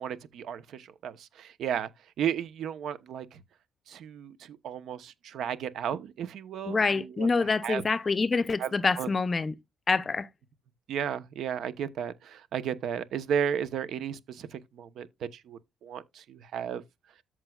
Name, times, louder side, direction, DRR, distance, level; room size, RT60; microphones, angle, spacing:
voice 1, 0.0-1.9 2.2-3.4 3.9-7.3 7.6-7.8 8.6-8.7 9.0-9.1 10.9-15.1 15.3-16.8, right 8 dB, 70° right, 0.9 m, -34 dB
voice 2, 6.7-9.5 9.9-10.3, left 4 dB, 30° left, 0.6 m, -26 dB
13.5 x 4.7 x 2.4 m
cardioid pair, 90°, 0 cm